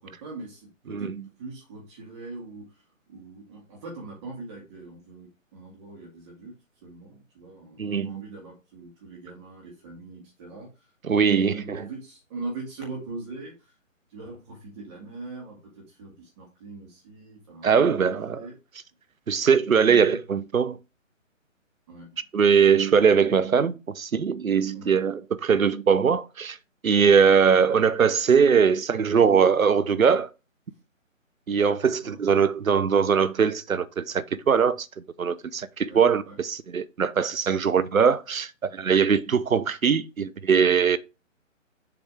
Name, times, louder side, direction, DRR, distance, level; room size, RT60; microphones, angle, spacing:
voice 1, 0.0-1.1 1.4-2.7 3.1-6.5 6.8-10.7 11.1-13.7 14.1-18.5 19.8-20.2 21.9-22.2 24.7-25.0 31.8-32.2 35.9-36.4, right 3 dB, 20° right, 1.8 m, -41 dB
voice 2, 7.8-8.2 11.0-11.9 17.6-18.5 19.3-20.8 22.3-26.6 26.8-30.3 31.5-34.9 35.2-41.0, right 6 dB, 85° right, 0.8 m, -21 dB
7.1 x 3.4 x 4.7 m
figure-of-eight pair, 150°, 40 cm